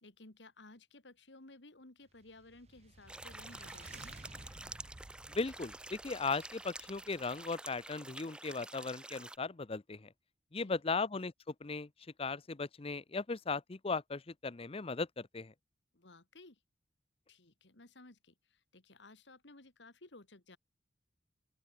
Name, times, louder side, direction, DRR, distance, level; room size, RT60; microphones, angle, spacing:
voice 1, 0.0-4.2 10.6-11.1 15.9-16.6 17.3-20.6, left 2 dB, 70° left, 2.4 m, -57 dB
sound 1, 2.1-7.6, right 2 dB, 35° right, 1.0 m, -55 dB
sound 2, 3.1-9.4, right 2 dB, 5° right, 0.5 m, -49 dB
voice 2, 5.3-10.1 10.5-11.9 12.2-15.5, left 4 dB, 30° left, 0.7 m, -37 dB
open air
head